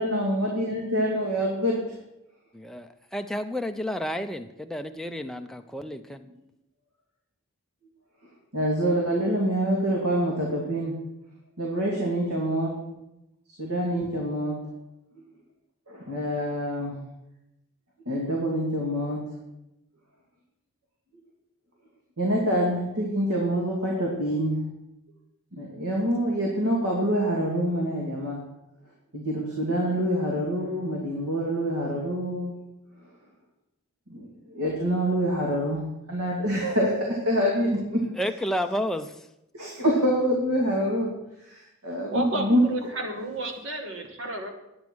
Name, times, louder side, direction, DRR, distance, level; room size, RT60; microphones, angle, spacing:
voice 1, 0.0-1.9 8.5-10.9 11.6-12.7 13.6-14.6 15.9-17.0 18.1-19.2 22.2-24.6 25.5-28.4 29.1-32.5 34.1-35.8 36.1-38.0 39.5-41.1 41.5-42.7, equal, 85° right, -2 dB, 2.5 m, -26 dB
voice 2, 2.5-6.2 38.2-39.1, equal, ahead, 6 dB, 0.5 m, -31 dB
voice 3, 42.1-44.5, right 2 dB, 60° right, 4 dB, 2.0 m, -31 dB
10.5 x 9.4 x 6.2 m, 0.88 s
head